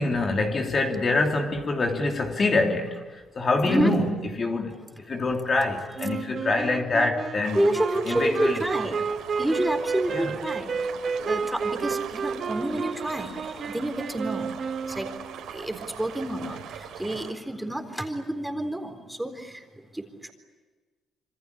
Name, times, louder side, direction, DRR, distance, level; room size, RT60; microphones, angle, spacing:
voice 1, 0.0-4.7 5.0-7.6 8.0-8.6 10.1-10.3, left 2 dB, 40° left, 3.3 m, -25 dB
Wind instrument woodwind instrument, 6.0-15.4, right 5 dB, 45° right, 2.1 m, -31 dB
sound 1, 7.4-17.3, right 8 dB, 85° right, 3.7 m, -41 dB
voice 2, 7.5-9.0 9.4-10.7 11.3-13.3 13.7-14.5 15.0-15.1 15.5-16.6 17.0-19.6 19.9-20.0, right 1 dB, 5° right, 3.9 m, -28 dB
27.0 x 26.0 x 8.5 m
cardioid pair, 90°, 0 cm